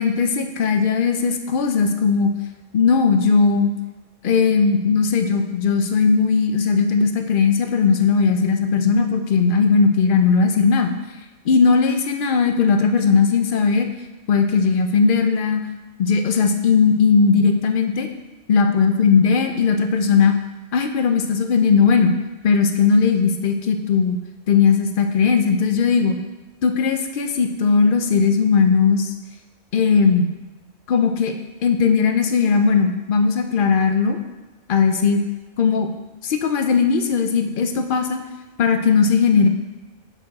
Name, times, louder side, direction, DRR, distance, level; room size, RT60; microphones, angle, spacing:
voice 1, 0.0-2.3 2.7-3.7 4.2-10.9 11.5-13.9 14.3-15.7 16.0-18.1 18.5-20.4 20.7-22.1 22.4-24.2 24.5-26.2 26.6-29.1 29.7-30.3 30.9-31.3 31.6-34.2 34.7-35.2 35.6-35.9 36.2-38.2 38.6-39.5, left 5 dB, 55° left, 6 dB, 0.6 m, -18 dB
7.0 x 4.6 x 4.1 m, 1.1 s
omnidirectional pair, 1.2 m